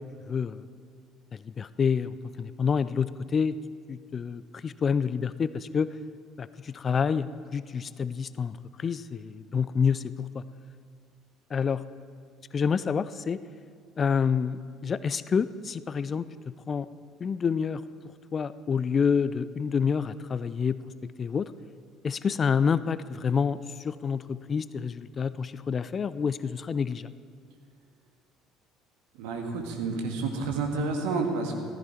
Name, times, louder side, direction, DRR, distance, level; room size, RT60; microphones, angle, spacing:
voice 1, 0.3-0.6 1.5-3.6 3.9-5.9 6.4-10.4 11.5-11.8 12.5-13.4 14.0-16.3 16.7-16.9 17.2-17.8 18.3-20.8 21.2-21.5 22.0-27.1, left 6 dB, 40° left, 16 dB, 0.4 m, -28 dB
voice 2, 29.2-31.6, right 3 dB, 70° right, 3 dB, 1.8 m, -30 dB
15.0 x 14.0 x 4.4 m, 2.1 s
hypercardioid pair, 60°, 0 cm